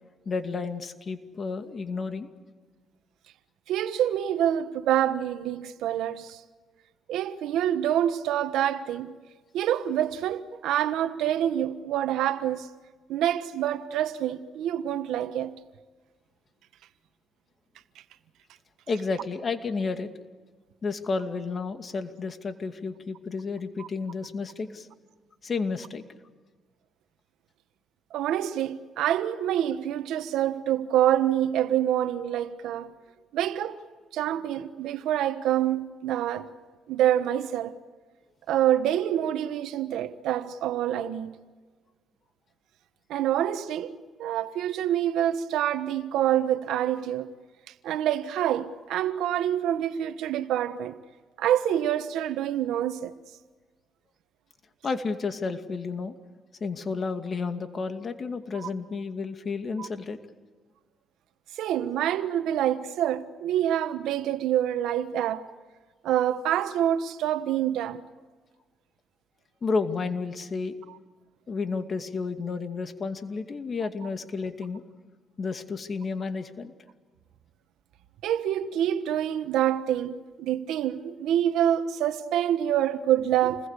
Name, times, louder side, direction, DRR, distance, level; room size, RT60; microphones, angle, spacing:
voice 1, 0.3-2.3 18.9-20.1 20.8-24.9 25.4-26.0 54.8-56.1 56.6-60.2 69.6-70.7 71.5-74.8 75.4-76.7, left 4 dB, 40° left, 2.4 m, -31 dB
voice 2, 3.7-6.4 7.1-9.1 9.5-12.7 13.1-15.6 23.8-23.9 28.1-32.9 33.3-33.8 34.1-36.5 36.9-37.8 38.5-41.3 43.1-43.9 44.2-47.3 47.8-51.0 51.4-53.1 58.5-58.7 59.8-59.9 61.5-65.5 66.0-68.0 78.2-83.7, right 11 dB, 85° right, 1.3 m, -26 dB
28.5 x 21.0 x 8.4 m
cardioid pair, 90°, 0 cm